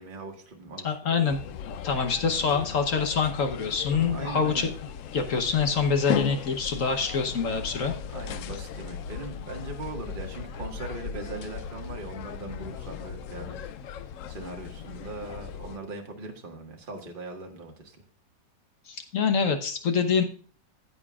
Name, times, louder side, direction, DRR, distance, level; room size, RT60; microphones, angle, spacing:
voice 1, 0.0-1.3 3.9-4.7 8.1-13.6 13.9-18.0, right 2 dB, 30° right, 1 dB, 1.7 m, -40 dB
voice 2, 0.8-1.4 1.8-4.7 5.1-7.9 18.9-20.2, left 5 dB, 50° left, 6 dB, 1.2 m, -25 dB
sound 1, 1.3-15.8, left 7 dB, 75° left, 0.7 m, -37 dB
15.5 x 7.9 x 2.4 m, 0.44 s
omnidirectional pair, 1.9 m